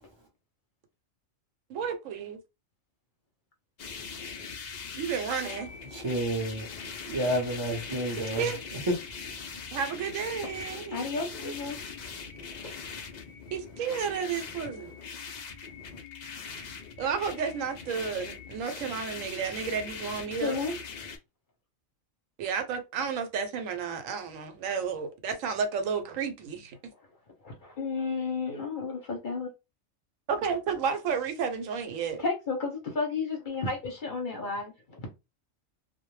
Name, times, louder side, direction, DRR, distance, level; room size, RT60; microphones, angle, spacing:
voice 1, 1.7-2.4 5.0-5.7 8.4-8.6 9.7-11.0 13.5-14.9 17.0-20.6 22.4-26.8 30.3-32.2, right 6 dB, 80° right, 1.0 m, -32 dB
sound 1, 3.8-21.2, left 5 dB, 85° left, 0.3 m, -41 dB
voice 2, 5.9-8.5 8.9-9.0, right 1 dB, 35° right, 0.5 m, -30 dB
voice 3, 10.9-11.8 20.4-20.7 27.0-27.1 27.4-29.5 32.2-35.1, left 4 dB, 50° left, 0.7 m, -32 dB
2.3 x 2.1 x 3.0 m
omnidirectional pair, 1.4 m